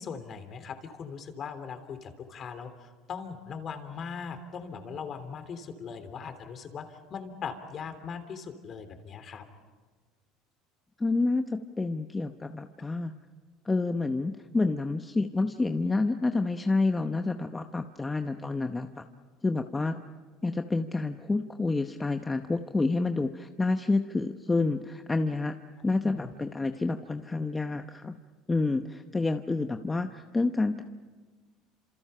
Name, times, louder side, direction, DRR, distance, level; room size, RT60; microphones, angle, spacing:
voice 1, 0.0-9.4 26.0-26.3, left 6 dB, 40° left, 8 dB, 3.2 m, -40 dB
voice 2, 11.0-13.1 13.7-19.1 19.4-20.0 20.4-25.5 25.8-28.1 28.5-30.8, left 3 dB, 15° left, 6 dB, 0.9 m, -28 dB
29.5 x 27.0 x 5.7 m, 1.4 s
supercardioid pair, 120°, 0 cm